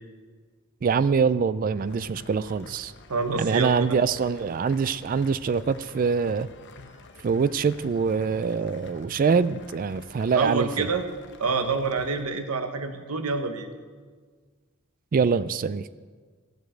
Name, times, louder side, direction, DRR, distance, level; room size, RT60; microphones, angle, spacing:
voice 1, 0.8-2.9 3.4-6.5 7.2-10.9 15.1-15.9, right 5 dB, 40° right, 15 dB, 0.3 m, -24 dB
sound 1, 1.8-12.2, left 3 dB, 55° left, 0.9 m, -48 dB
voice 2, 3.1-4.0 10.3-11.1 11.4-13.7, right 4 dB, 90° right, 8 dB, 1.1 m, -27 dB
15.0 x 8.1 x 7.9 m, 1.5 s
head